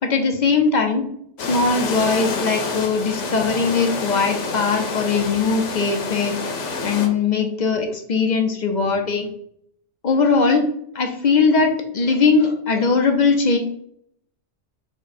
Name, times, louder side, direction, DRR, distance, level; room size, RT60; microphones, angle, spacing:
voice 1, 0.0-1.0 1.5-6.3 6.8-9.3 10.0-10.7 10.9-13.6, left 4 dB, 55° left, 4 dB, 0.5 m, -20 dB
sound 1, 1.4-7.1, left 4 dB, 90° left, 1.0 m, -28 dB
4.9 x 2.1 x 4.1 m, 0.70 s
omnidirectional pair, 1.2 m